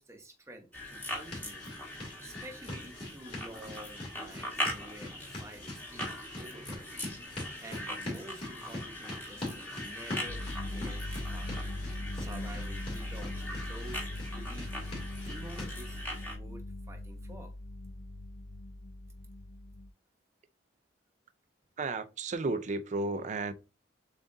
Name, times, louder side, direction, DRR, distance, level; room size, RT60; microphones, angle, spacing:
voice 1, 0.0-1.6 2.2-7.0 7.6-11.0 11.3-11.5 12.1-14.8 15.2-17.5, right 1 dB, 15° right, 0.9 m, -49 dB
sound 1, 0.7-16.4, left 1 dB, 10° left, 1.2 m, -41 dB
sound 2, 1.2-15.7, left 1 dB, 35° left, 2.3 m, -44 dB
sound 3, 10.3-19.9, left 1 dB, 85° left, 0.4 m, -40 dB
voice 2, 21.8-23.5, right 3 dB, 40° right, 0.5 m, -33 dB
7.1 x 2.5 x 2.7 m
head